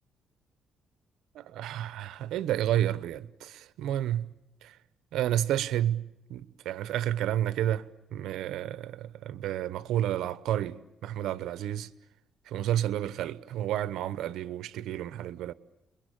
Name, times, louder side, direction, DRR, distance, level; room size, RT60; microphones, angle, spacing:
voice 1, 1.3-4.3 4.6-4.7 5.1-11.9 12.5-15.5, right 12 dB, 90° right, 1.0 m, -31 dB
30.0 x 22.0 x 8.9 m
cardioid pair, 145°, 0 cm